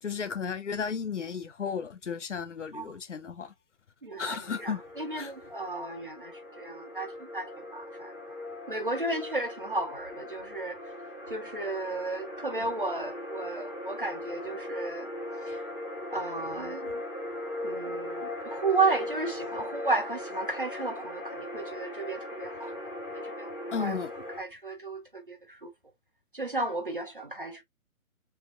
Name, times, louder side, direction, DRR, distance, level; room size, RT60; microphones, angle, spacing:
voice 1, 0.0-3.5 4.2-4.8 5.2-5.3 23.7-24.1, left 6 dB, 55° left, 0.7 m, -34 dB
voice 2, 4.0-8.1 8.7-10.8 11.3-15.1 15.5-15.6 16.1-17.0 17.6-22.8 23.1-24.0 24.4-25.7 26.3-27.6, right 3 dB, 40° right, 0.5 m, -33 dB
sound 1, 4.4-24.4, left 1 dB, 15° left, 0.8 m, -39 dB
3.4 x 3.4 x 2.4 m
hypercardioid pair, 170°, 43 cm